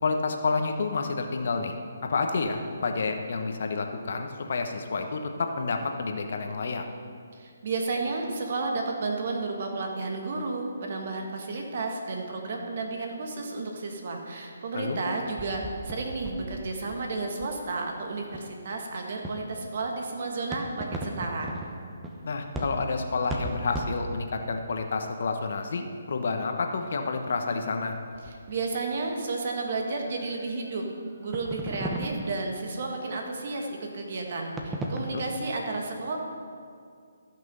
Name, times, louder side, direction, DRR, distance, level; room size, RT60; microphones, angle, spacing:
voice 1, 0.0-1.7 2.0-6.8 14.7-15.0 22.2-28.0 35.1-35.2, left 4 dB, 60° left, 5 dB, 1.0 m, -29 dB
voice 2, 7.4-21.5 28.2-30.8 31.2-36.2, right 3 dB, 50° right, 2 dB, 1.7 m, -32 dB
sound 1, 15.2-17.7 18.3-18.5 19.2-19.7 20.5-24.9 28.1-28.6 29.0-29.1 29.8-29.9 30.2-30.5 31.2-33.1 33.4-33.7 34.6-35.1, right 1 dB, 10° right, 0.8 m, -36 dB
14.5 x 6.0 x 5.5 m, 2.3 s
hypercardioid pair, 155°, 0 cm